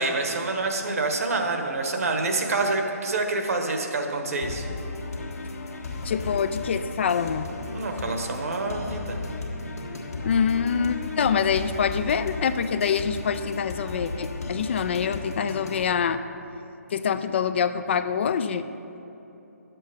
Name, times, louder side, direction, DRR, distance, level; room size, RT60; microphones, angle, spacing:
voice 1, 0.0-4.6 7.7-9.2, right 3 dB, 60° right, 4 dB, 1.3 m, -27 dB
sound 1, 4.4-15.8, left 3 dB, 70° left, 1.5 m, -34 dB
voice 2, 6.0-7.5 10.2-16.2 16.9-18.7, left 7 dB, 45° left, 11 dB, 0.4 m, -25 dB
10.0 x 7.6 x 5.2 m, 3.0 s
figure-of-eight pair, 145°, 9 cm